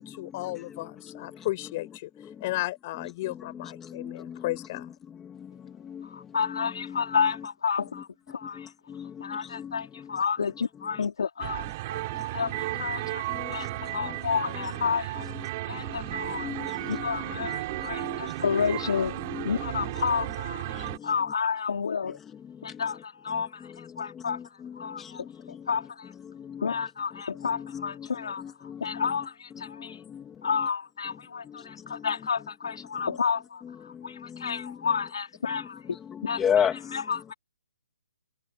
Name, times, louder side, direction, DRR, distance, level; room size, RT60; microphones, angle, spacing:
voice 1, 0.0-2.1 2.4-4.9, left 18 dB, 25° left, 6.9 m, -34 dB
voice 2, 3.5-4.5 5.9-6.1 6.4-7.5 7.9-8.0 8.6-9.8 13.3-13.5 14.0-14.2 14.6-14.7 15.2-15.4 16.4-17.5 18.0-18.2 18.9-19.0 19.3-19.5 19.8-19.9 20.7-21.1 24.3-25.1 26.4-26.7 27.4-28.1 28.4-29.1 30.1-30.2 30.6-30.7 31.9-32.0 33.6-33.7 34.4-34.7 35.5-35.6 36.1-37.0, left 8 dB, 10° left, 2.5 m, -34 dB
voice 3, 6.0-8.7 9.2-11.7 12.2-15.3 15.7-16.5 16.9-19.2 19.4-22.2 22.6-26.1 26.6-30.0 30.4-35.8 36.2-36.4 36.9-37.3, left 6 dB, 65° left, 3.4 m, -31 dB
sound 1, 11.4-21.0, right 19 dB, 25° right, 6.8 m, -34 dB
hypercardioid pair, 175°, 3 cm